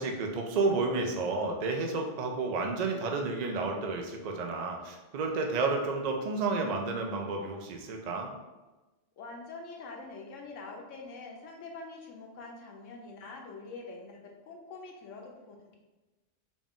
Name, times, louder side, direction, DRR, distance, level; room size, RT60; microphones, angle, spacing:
voice 1, 0.0-8.3, right 3 dB, 70° right, 2 dB, 0.4 m, -31 dB
voice 2, 9.2-15.8, left 3 dB, 85° left, 1 dB, 1.1 m, -45 dB
4.1 x 2.4 x 3.5 m, 1.1 s
omnidirectional pair, 1.3 m